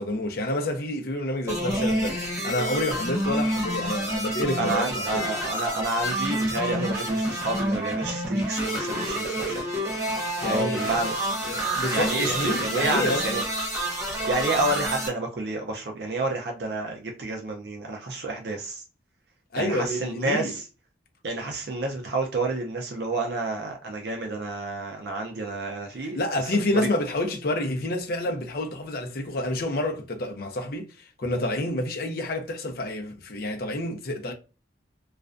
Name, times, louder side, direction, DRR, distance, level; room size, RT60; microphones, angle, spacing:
voice 1, 0.0-5.2 10.4-11.1 11.4-13.4 19.5-20.5 26.0-34.3, left 1 dB, 55° left, 0.6 m, -29 dB
sound 1, 1.5-15.1, right 1 dB, 15° right, 0.6 m, -28 dB
voice 2, 4.6-9.6 10.4-11.1 11.9-13.4 14.3-18.8 19.6-20.6 21.2-26.2 26.8-26.9, right 2 dB, 65° right, 0.5 m, -29 dB
2.3 x 2.1 x 2.4 m
head